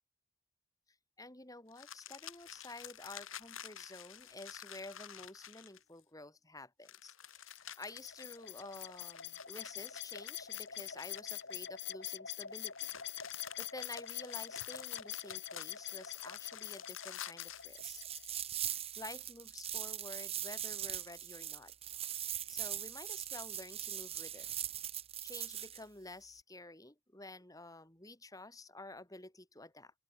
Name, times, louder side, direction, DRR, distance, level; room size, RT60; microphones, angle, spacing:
voice 1, 1.2-12.9 13.3-18.0 19.0-21.7 22.5-24.5 25.2-29.9, left 2 dB, 15° left, 3.6 m, -51 dB
sound 1, 1.7-6.0 6.8-11.8 12.5-17.7, left 10 dB, 75° left, 3.1 m, -50 dB
sound 2, 7.5-18.5, left 11 dB, 55° left, 2.7 m, -45 dB
sound 3, 17.7-25.8, right 10 dB, 30° right, 1.2 m, -41 dB
open air
head